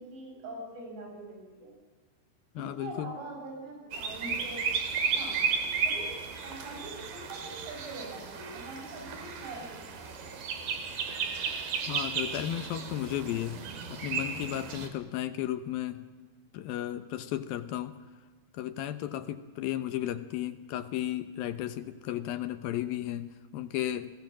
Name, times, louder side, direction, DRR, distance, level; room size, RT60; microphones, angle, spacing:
voice 1, 0.0-1.7 2.6-4.6 4.9-5.4 5.8-6.1 6.4-10.3, right 2 dB, 85° right, 0 dB, 10.5 m, -43 dB
voice 2, 2.6-3.1 11.9-13.6 13.9-16.1 16.5-18.0 18.5-24.1, left 12 dB, 70° left, 11 dB, 2.5 m, -34 dB
sound 1, 3.9-14.9, right 6 dB, 65° right, 4.2 m, -34 dB
30.0 x 20.0 x 7.5 m, 1.4 s
omnidirectional pair, 4.9 m